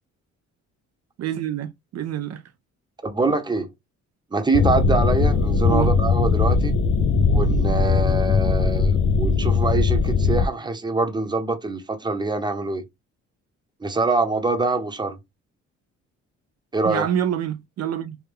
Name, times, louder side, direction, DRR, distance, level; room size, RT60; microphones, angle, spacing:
voice 1, 1.2-2.4 5.7-5.9 16.8-18.2, right 10 dB, 60° right, 0.4 m, -26 dB
voice 2, 3.0-3.7 4.3-6.7 7.3-12.8 13.8-15.2 16.7-17.1, right 3 dB, 15° right, 0.8 m, -24 dB
sound 1, 4.5-10.5, left 4 dB, 45° left, 0.5 m, -19 dB
3.4 x 2.1 x 3.5 m
cardioid pair, 90°, 30 cm